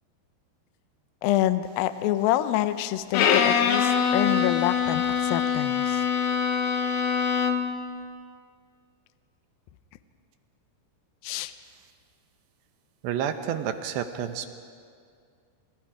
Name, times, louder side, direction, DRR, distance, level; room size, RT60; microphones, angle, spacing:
voice 1, 1.2-6.0 11.2-11.5, left 13 dB, 85° left, 11 dB, 2.0 m, -27 dB
Bowed string instrument, 3.1-7.8, left 7 dB, 65° left, 2.7 m, -24 dB
voice 2, 13.0-14.5, right 9 dB, 75° right, 8 dB, 2.9 m, -29 dB
29.0 x 27.0 x 4.9 m, 2.2 s
omnidirectional pair, 5.3 m